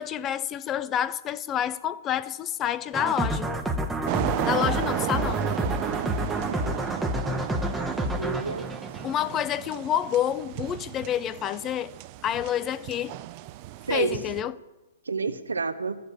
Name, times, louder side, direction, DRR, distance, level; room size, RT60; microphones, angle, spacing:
voice 1, 0.0-3.5 4.5-5.5 9.0-11.9 12.2-13.2 13.9-14.5, left 10 dB, 25° left, 0.4 m, -28 dB
sound 1, 2.9-9.7, right 1 dB, 5° right, 0.9 m, -29 dB
sound 2, 4.1-14.4, right 15 dB, 40° right, 0.4 m, -34 dB
voice 2, 7.8-8.7 13.9-14.2 15.0-16.0, right 4 dB, 75° right, 0.8 m, -29 dB
13.5 x 7.2 x 8.5 m
figure-of-eight pair, 115°, 0 cm